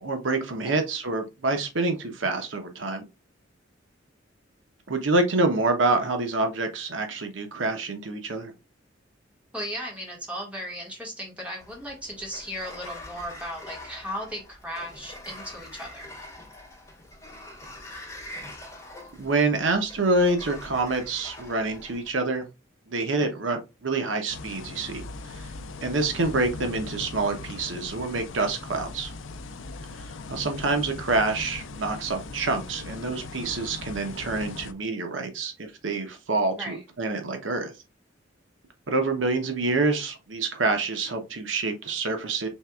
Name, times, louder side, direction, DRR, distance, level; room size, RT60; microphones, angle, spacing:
voice 1, 0.0-3.1 4.9-8.5 19.2-22.4 22.9-25.5 25.8-29.1 30.3-37.7 38.9-42.5, right 3 dB, 80° right, 5 dB, 0.8 m, -27 dB
voice 2, 9.5-16.1 36.5-36.8, equal, 5° right, -2 dB, 1.8 m, -36 dB
Sliding door, 11.6-22.1, left 1 dB, 20° left, 2.0 m, -44 dB
sound 1, 24.3-34.7, left 3 dB, 85° left, 0.5 m, -39 dB
4.5 x 3.3 x 2.3 m, 0.25 s
head